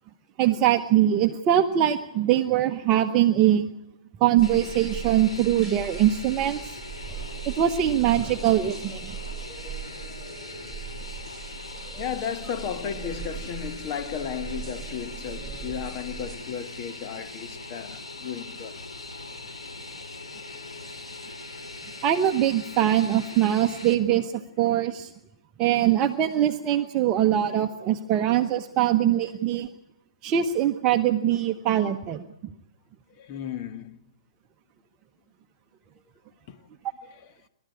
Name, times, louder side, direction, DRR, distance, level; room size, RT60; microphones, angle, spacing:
voice 1, 0.4-3.7 4.2-6.8 7.5-9.1 22.0-25.1 25.6-29.7 30.2-32.2, right 11 dB, 30° right, 1.0 m, -22 dB
Fixed-wing aircraft airplane, 4.4-23.9, left 2 dB, 90° left, 3.8 m, -41 dB
sound 1, 4.4-16.4, right 8 dB, ahead, 5.9 m, -39 dB
voice 2, 12.0-18.8 33.2-34.0 36.5-36.6, left 8 dB, 35° left, 1.6 m, -34 dB
28.0 x 12.5 x 8.4 m
hypercardioid pair, 125°, 3 cm